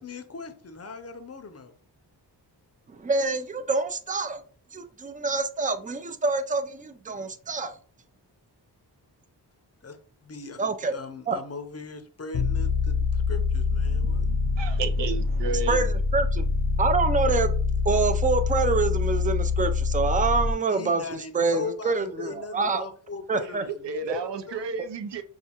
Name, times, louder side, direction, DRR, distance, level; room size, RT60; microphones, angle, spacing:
voice 1, 0.0-1.7 9.8-14.3 20.7-24.8, left 4 dB, 35° left, 0.6 m, -40 dB
voice 2, 3.0-4.4 4.7-7.8 10.6-10.9 11.3-11.4 14.3-14.4 15.7-16.5 16.8-17.5 17.9-22.8 23.3-23.6 24.1-24.2, right 4 dB, 20° right, 0.3 m, -26 dB
sound 1, 12.3-20.5, left 4 dB, 80° left, 0.8 m, -25 dB
voice 3, 14.6-15.9 23.7-25.2, right 4 dB, 75° right, 0.6 m, -32 dB
5.6 x 2.3 x 2.9 m
wide cardioid pair, 100°, 43 cm